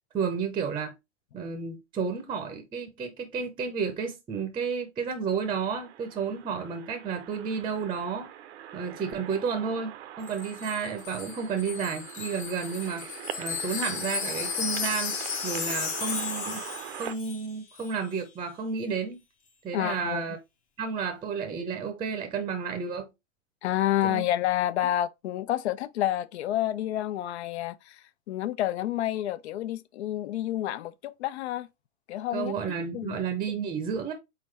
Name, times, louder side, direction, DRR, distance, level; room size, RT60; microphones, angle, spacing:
voice 1, 0.1-0.9 1.3-8.3 8.7-13.1 13.4-15.2 15.4-16.6 17.0-19.2 19.6-20.4 20.8-23.1 24.0-24.2 32.3-34.1, right 6 dB, 15° right, 0.7 m, -31 dB
sound 1, 5.4-17.1, right 11 dB, 60° right, 0.7 m, -42 dB
Wind chime, 10.3-17.5 17.8-18.0, left 7 dB, 20° left, 0.7 m, -34 dB
voice 2, 19.7-20.2 23.6-28.0 28.3-31.7 32.1-32.5 32.9-33.2, left 13 dB, 60° left, 0.6 m, -29 dB
4.3 x 3.9 x 3.2 m
hypercardioid pair, 125°, 37 cm